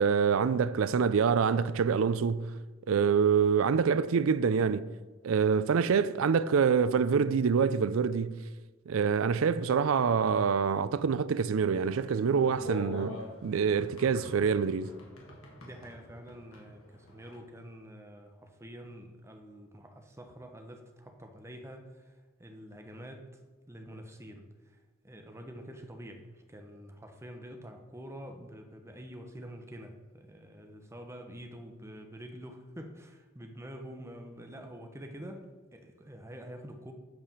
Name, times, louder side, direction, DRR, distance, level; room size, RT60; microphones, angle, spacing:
voice 1, 0.0-2.6 2.9-4.9 5.2-8.4 8.9-14.9, right 6 dB, 75° right, 0.4 m, -26 dB
sound 1, 11.6-17.4, left 1 dB, 80° left, 2.1 m, -46 dB
voice 2, 15.6-23.3 23.7-24.8 25.0-36.9, equal, 15° right, 0.9 m, -47 dB
8.1 x 5.0 x 7.1 m
head